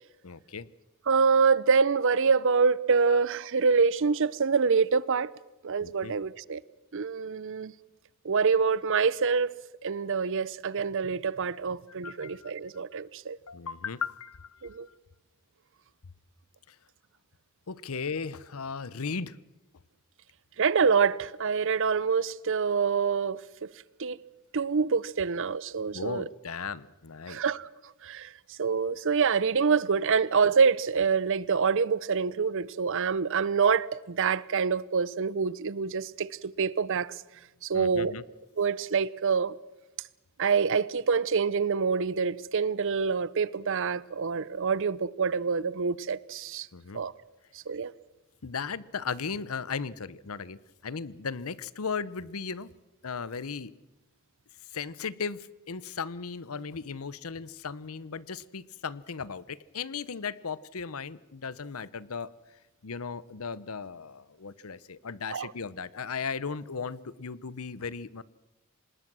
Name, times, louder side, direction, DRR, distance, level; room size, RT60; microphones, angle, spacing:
voice 1, 0.2-0.7 3.1-3.2 5.8-6.2 11.5-11.6 12.0-12.5 13.5-14.8 16.7-16.8 17.7-19.4 25.9-27.4 37.7-38.2 46.7-47.0 48.4-52.7 53.0-53.7 54.7-62.3 62.8-68.2, left 5 dB, 75° left, 0.8 m, -36 dB
voice 2, 1.1-5.3 5.6-6.6 6.9-7.7 8.2-9.5 9.8-13.4 14.6-14.9 20.6-23.7 24.0-24.2 24.5-26.3 27.3-27.7 28.0-28.3 28.6-37.2 37.6-38.1 38.6-39.5 40.4-46.7 46.9-47.1 47.7-47.9 65.3-65.5, right 5 dB, 60° right, 0.7 m, -26 dB
25.5 x 20.5 x 6.2 m
head